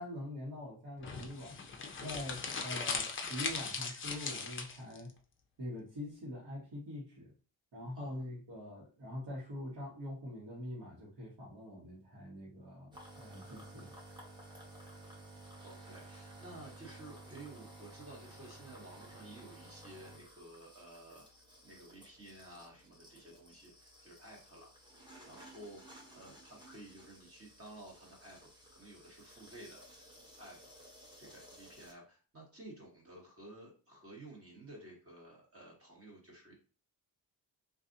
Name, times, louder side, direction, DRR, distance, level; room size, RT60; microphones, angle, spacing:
voice 1, 0.0-1.6 2.0-5.1 5.6-7.3 7.7-13.9, left 1 dB, 65° right, -6 dB, 1.2 m, -44 dB
sound 1, 1.0-5.0, left 5 dB, 30° left, 0.4 m, -39 dB
sound 2, 12.9-31.9, right 1 dB, 10° right, 0.7 m, -55 dB
voice 2, 15.6-21.2 21.6-24.7 25.3-30.1 30.4-30.8 31.2-36.5, right 1 dB, 30° right, -1 dB, 1.2 m, -53 dB
3.9 x 2.5 x 2.6 m, 0.36 s
wide cardioid pair, 175°, 45 cm